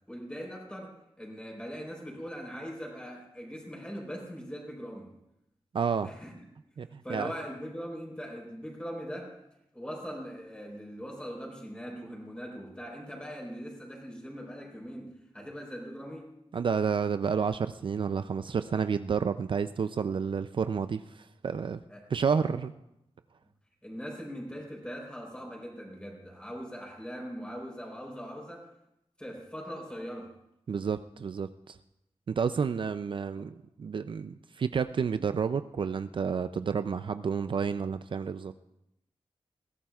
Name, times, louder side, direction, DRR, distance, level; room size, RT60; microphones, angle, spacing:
voice 1, 0.1-5.1 6.0-6.4 6.9-9.4 9.7-16.3 21.9-22.1 22.4-22.6 23.8-28.7 29.2-30.4 33.4-33.5, equal, 10° left, -1 dB, 4.0 m, -41 dB
voice 2, 5.7-6.1 6.8-7.3 16.5-21.8 22.1-22.7 30.7-31.8 32.3-38.5, right 6 dB, 55° right, 11 dB, 0.4 m, -30 dB
21.5 x 16.0 x 2.4 m, 0.85 s
wide cardioid pair, 110°, 10 cm